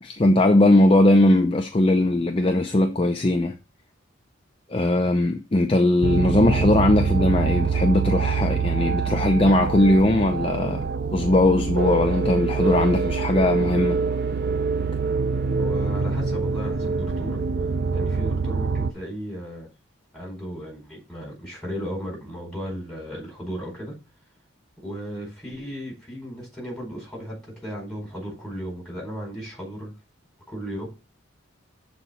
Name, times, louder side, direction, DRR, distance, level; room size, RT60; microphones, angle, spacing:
voice 1, 0.0-3.5 4.7-10.8 11.1-14.0, left 1 dB, 30° left, 0.6 m, -19 dB
sound 1, 6.0-18.9, right 4 dB, 50° right, 0.5 m, -25 dB
voice 2, 15.6-17.4 17.9-19.7 20.1-23.9 24.8-29.9 30.5-30.9, equal, ahead, 4.5 m, -35 dB
7.3 x 4.3 x 5.5 m
head